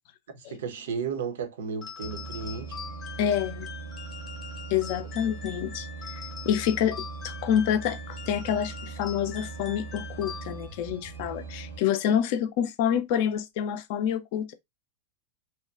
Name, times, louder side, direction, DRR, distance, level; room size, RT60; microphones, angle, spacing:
voice 1, 0.3-2.8, right 6 dB, 60° right, 0.6 m, -34 dB
sound 1, 1.8-10.8, left 7 dB, 25° left, 0.8 m, -43 dB
sound 2, 2.0-11.8, right 5 dB, 85° right, 1.1 m, -40 dB
voice 2, 3.2-3.7 4.7-5.9 6.1-14.5, left 9 dB, 50° left, 0.4 m, -27 dB
2.8 x 2.1 x 2.3 m
figure-of-eight pair, 90°, 0 cm